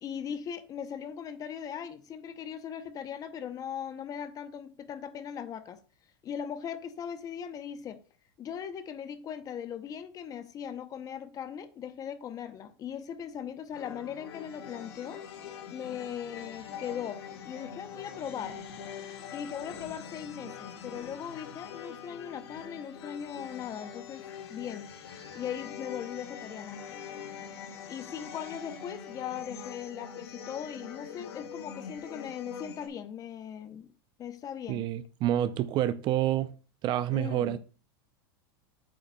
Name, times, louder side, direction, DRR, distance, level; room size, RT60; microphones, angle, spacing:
voice 1, 0.0-5.8 6.2-8.0 8.4-15.2 15.7-18.6 19.3-24.9 25.3-26.8 27.9-33.9 34.2-34.9 37.1-37.6, left 8 dB, 25° left, 0.7 m, -39 dB
sound 1, 13.7-32.9, left 7 dB, 85° left, 1.4 m, -44 dB
voice 2, 34.7-36.5 36.8-37.6, right 12 dB, 35° right, 0.4 m, -28 dB
8.4 x 8.4 x 2.2 m
supercardioid pair, 140°, 13 cm